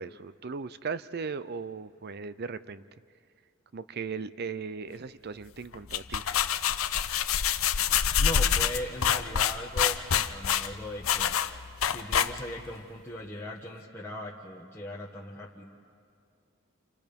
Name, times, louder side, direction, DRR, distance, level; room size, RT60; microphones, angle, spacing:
voice 1, 0.0-2.8 3.7-6.2, right 5 dB, 50° right, 15 dB, 0.6 m, -37 dB
sound 1, 5.7-12.7, left 8 dB, 85° left, 0.7 m, -26 dB
voice 2, 8.2-11.4 11.8-15.6, equal, 10° left, -6 dB, 1.5 m, -39 dB
29.0 x 28.0 x 5.3 m, 2.3 s
head